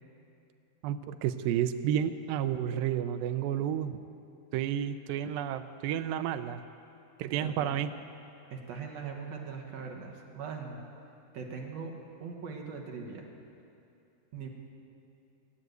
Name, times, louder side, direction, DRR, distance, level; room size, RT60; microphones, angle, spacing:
voice 1, 0.8-4.0 4.5-6.6 7.2-7.9, right 10 dB, 85° right, 9 dB, 2.0 m, -31 dB
voice 2, 7.3-7.7 8.5-10.9 11.3-11.9 12.2-13.3 14.3-14.5, right 5 dB, 60° right, 1 dB, 1.9 m, -40 dB
19.0 x 9.5 x 8.0 m, 2.7 s
omnidirectional pair, 4.7 m